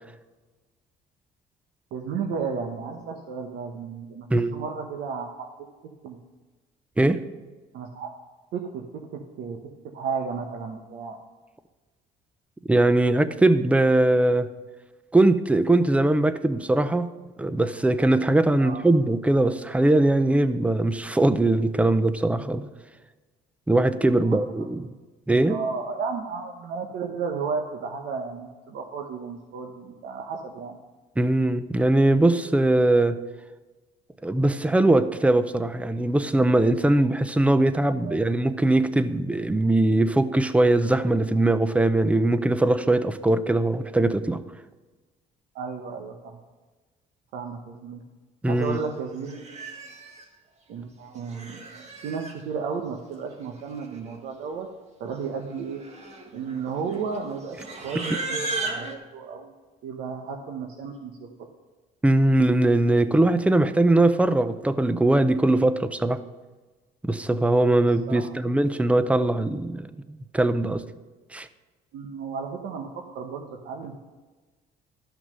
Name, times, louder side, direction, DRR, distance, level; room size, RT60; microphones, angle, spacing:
voice 1, 1.9-5.5 6.0-6.2 7.7-8.1 8.5-8.8 9.1-9.6 9.9-11.2 18.6-18.9 24.2-24.7 25.5-30.8 38.0-38.2 45.5-46.4 47.3-48.0 48.5-49.5 50.7-51.6 52.0-54.7 55.0-55.8 56.3-59.5 59.8-61.5 68.1-68.4 71.9-74.0, right 5 dB, 80° right, 2 dB, 1.1 m, -33 dB
voice 2, 12.7-14.5 15.1-17.1 17.4-22.7 23.7-24.8 25.3-25.6 31.2-33.2 34.2-44.4 48.4-48.8 62.0-66.2 67.0-70.8 71.3-71.5, right 2 dB, 10° right, 12 dB, 0.5 m, -21 dB
Livestock farm animals working animals, 48.7-48.9 49.3-50.2 51.1-52.4 53.4-53.5 53.7-54.1 54.4-54.7 55.4-58.9, right 3 dB, 40° right, 1.6 m, -35 dB
13.0 x 6.0 x 5.4 m, 1.3 s
cardioid pair, 110°, 17 cm